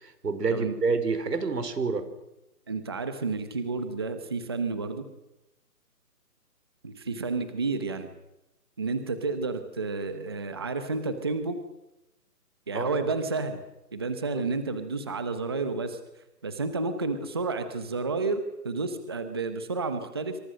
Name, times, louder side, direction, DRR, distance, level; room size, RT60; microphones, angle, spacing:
voice 1, 0.0-2.1 12.7-13.1 14.3-14.5, right 4 dB, 90° right, 10 dB, 5.2 m, -28 dB
voice 2, 2.7-5.1 6.8-8.1 8.8-11.6 12.7-13.6 13.9-16.0 16.4-20.4, right 3 dB, 15° right, 9 dB, 0.9 m, -30 dB
27.5 x 25.5 x 6.4 m, 0.93 s
hypercardioid pair, 175°, 47 cm